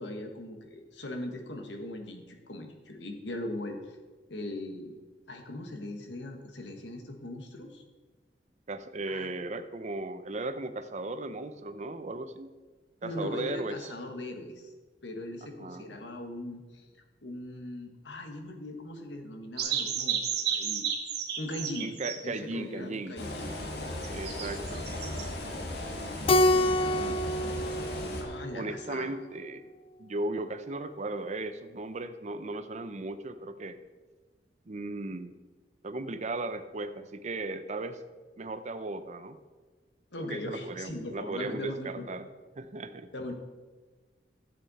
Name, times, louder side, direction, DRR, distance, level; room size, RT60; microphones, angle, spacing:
voice 1, 0.0-4.0 4.3-4.9 5.3-7.8 9.1-9.3 13.0-14.7 15.0-16.9 17.2-20.9 21.4-22.0 22.2-23.5 26.5-27.2 28.2-29.1 40.1-42.2 43.1-43.3, left 1 dB, 85° left, 4 dB, 1.4 m, -40 dB
voice 2, 8.7-12.5 13.0-13.8 15.6-16.0 21.8-23.1 24.1-24.9 26.9-27.2 28.5-29.7 30.0-33.8 34.7-35.3 35.8-38.0 38.4-39.4 40.2-42.3 42.6-43.3, right 2 dB, 40° right, 10 dB, 0.6 m, -36 dB
sound 1, 19.6-22.2 24.0-25.3, right 8 dB, 65° right, 1.3 m, -32 dB
sound 2, 23.2-28.2, left 1 dB, 65° left, 1.6 m, -36 dB
Keyboard (musical), 26.3-28.9, left 1 dB, 30° left, 0.4 m, -27 dB
12.5 x 7.8 x 4.2 m, 1.3 s
head